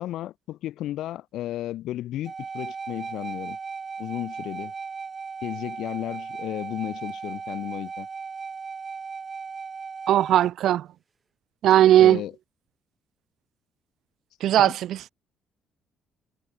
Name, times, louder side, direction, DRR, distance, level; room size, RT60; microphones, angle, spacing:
voice 1, 0.0-3.6 4.0-4.7 5.4-8.1 12.0-12.3 14.5-14.7, left 13 dB, 75° left, 7.5 m, -33 dB
sound 1, 2.2-10.5, right 5 dB, 35° right, 7.4 m, -36 dB
voice 2, 10.1-10.9 11.6-12.2 14.4-15.1, right 12 dB, 70° right, 2.9 m, -18 dB
cardioid pair, 80°, 0 cm